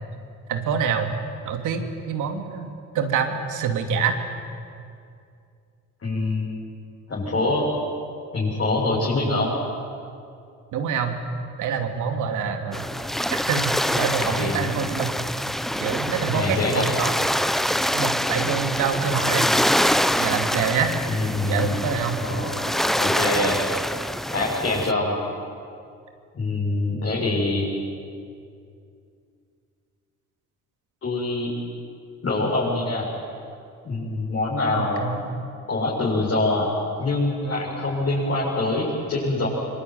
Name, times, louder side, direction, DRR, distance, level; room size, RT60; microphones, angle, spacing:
voice 1, 0.5-1.1 1.4-2.7 2.9-4.2 10.7-11.2 11.6-12.8 13.3-15.1 15.8-17.1 17.9-19.5 20.2-21.0 21.4-22.2 34.7-35.5, right 6 dB, 85° right, 5 dB, 2.7 m, -26 dB
voice 2, 6.0-6.5 7.1-7.7 8.3-9.5 13.8-14.7 16.3-16.8 21.1-21.8 22.2-23.6 24.3-25.1 26.3-27.7 31.0-31.5 32.2-33.1 33.8-35.1 35.7-36.7 37.0-39.5, left 2 dB, 45° left, -7 dB, 7.6 m, -25 dB
sound 1, 12.7-24.9, equal, ahead, 0.8 m, -25 dB
25.0 x 22.5 x 9.5 m, 2.4 s
cardioid pair, 90°, 30 cm